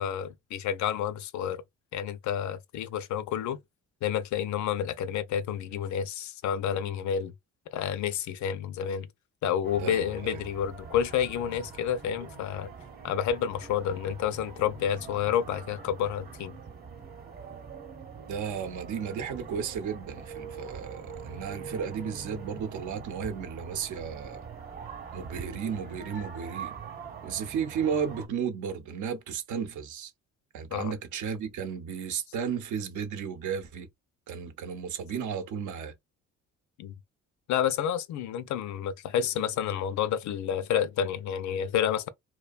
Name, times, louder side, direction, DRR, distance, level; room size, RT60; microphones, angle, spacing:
voice 1, 0.0-1.6 1.9-3.6 4.0-7.3 7.7-9.1 9.4-12.7 13.0-16.5 30.7-30.9 36.8-36.9 37.5-42.1, left 9 dB, 70° left, 0.5 m, -29 dB
sound 1, 9.6-28.3, right 6 dB, 30° right, 0.9 m, -44 dB
voice 2, 9.8-10.4 18.3-24.4 25.1-26.7 27.2-30.1 30.5-33.9 34.3-35.9, right 7 dB, 75° right, 0.7 m, -34 dB
2.6 x 2.2 x 2.4 m
cardioid pair, 90°, 30 cm